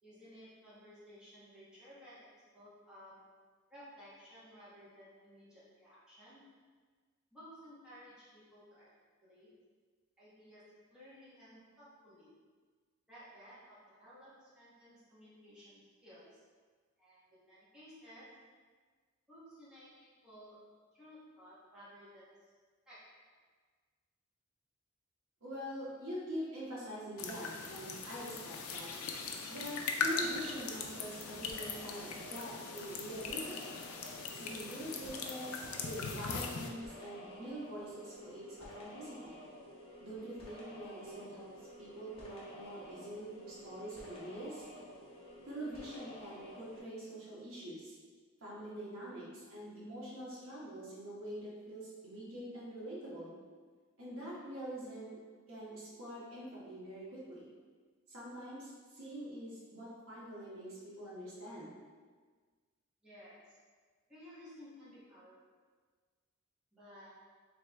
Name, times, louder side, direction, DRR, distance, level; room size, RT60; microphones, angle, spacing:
voice 1, 0.0-3.3 3.7-6.4 7.3-8.9 9.2-9.5 10.2-12.3 13.1-16.4 17.0-18.5 19.3-22.5 22.9-23.3 63.0-63.6 64.1-65.7 66.7-67.3, equal, 5° right, -12 dB, 1.4 m, -56 dB
voice 2, 25.4-33.7 34.3-39.4 40.0-41.5 41.8-44.7 45.5-48.0 48.4-53.4 54.0-55.2 55.5-57.5 58.1-61.7, equal, 70° right, -7 dB, 1.3 m, -45 dB
sound 1, 27.2-36.7, left 4 dB, 85° left, 0.4 m, -40 dB
sound 2, 30.0-46.8, left 1 dB, 30° left, 0.9 m, -52 dB
3.5 x 3.4 x 3.2 m, 1.5 s
head